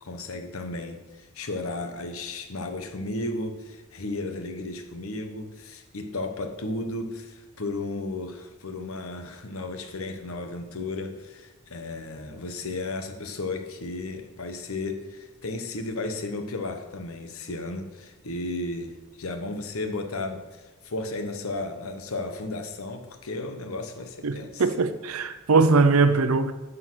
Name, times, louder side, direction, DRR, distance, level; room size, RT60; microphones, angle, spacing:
voice 1, 0.0-24.6, left 2 dB, 80° left, 1.1 m, -34 dB
voice 2, 24.2-26.5, right 4 dB, 85° right, 0.7 m, -21 dB
9.3 x 6.4 x 6.1 m
head